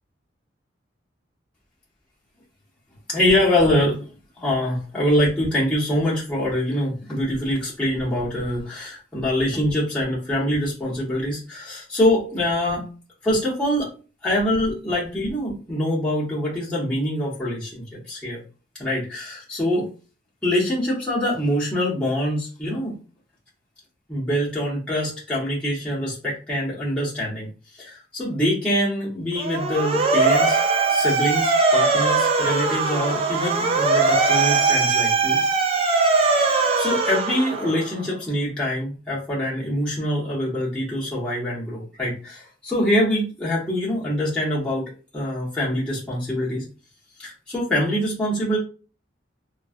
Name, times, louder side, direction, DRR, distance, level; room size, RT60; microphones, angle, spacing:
voice 1, 3.1-4.1 4.4-12.9 13.2-13.9 14.2-18.4 18.8-19.9 20.4-23.0 24.1-27.5 27.8-30.6 30.9-35.4 36.4-46.6 47.2-48.6, left 1 dB, 5° left, -8 dB, 0.9 m, -24 dB
Motor vehicle (road) / Siren, 29.4-38.0, right 4 dB, 30° right, 0.3 m, -20 dB
3.0 x 2.3 x 2.5 m, 0.35 s
head